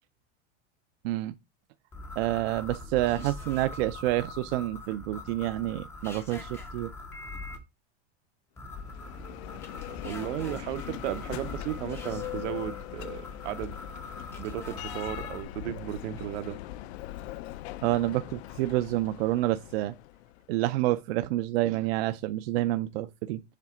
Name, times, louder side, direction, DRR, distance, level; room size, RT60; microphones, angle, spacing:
voice 1, 1.0-1.3 2.2-6.9 17.8-19.9 20.5-23.4, right 16 dB, 60° right, 0.5 m, -28 dB
sound 1, 1.9-7.6 8.6-15.4, left 3 dB, 5° left, 0.4 m, -42 dB
Bell, 8.6-20.5, left 14 dB, 65° left, 0.5 m, -41 dB
voice 2, 9.9-13.8 14.4-16.6 21.6-21.8, right 12 dB, 80° right, 0.9 m, -35 dB
7.3 x 3.7 x 4.3 m
supercardioid pair, 180°, 35 cm